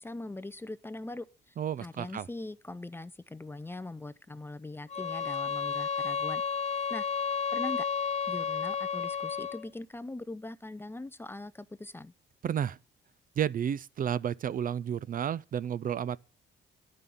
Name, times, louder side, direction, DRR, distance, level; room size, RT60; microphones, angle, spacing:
voice 1, 0.0-1.5 1.8-6.4 6.9-7.1 7.5-12.1, left 2 dB, 10° left, 0.5 m, -41 dB
voice 2, 1.6-2.3 12.4-12.8 13.4-16.2, right 9 dB, 45° right, 0.4 m, -31 dB
sound 1, 4.9-9.7, left 6 dB, 35° left, 0.8 m, -32 dB
11.0 x 5.3 x 7.1 m
cardioid pair, 90°, 20 cm